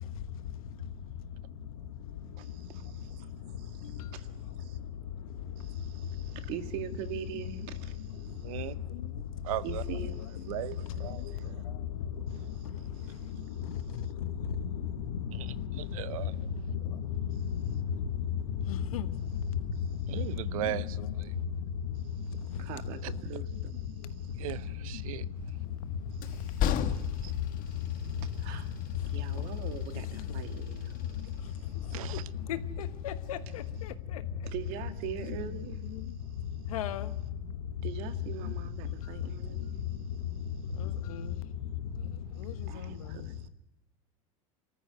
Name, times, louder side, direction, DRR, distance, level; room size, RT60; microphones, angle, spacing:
voice 1, 2.4-3.3 3.6-4.3 4.6-4.8 5.6-8.5 9.6-10.5 11.3-11.5 12.3-12.7 12.9-14.0 17.3-17.4 19.7-19.9 21.9-24.5 26.1-27.3 27.7-32.0 34.4-35.8 37.8-40.2 42.7-43.5, right 10 dB, 60° right, 2.0 m, -44 dB
voice 2, 8.4-8.8 9.4-9.8 10.5-11.6 12.8-12.9 15.3-16.5 20.1-21.4 23.0-23.1 24.4-25.3 27.2-27.3 31.9-32.3, right 15 dB, 80° right, 0.7 m, -38 dB
voice 3, 18.7-19.1 20.6-20.7 32.5-33.6 36.7-37.1 41.1-41.2, left 9 dB, 85° left, 1.2 m, -34 dB
Train, 25.4-34.0, left 9 dB, 50° left, 1.5 m, -38 dB
24.0 x 14.0 x 9.3 m
hypercardioid pair, 95°, 18 cm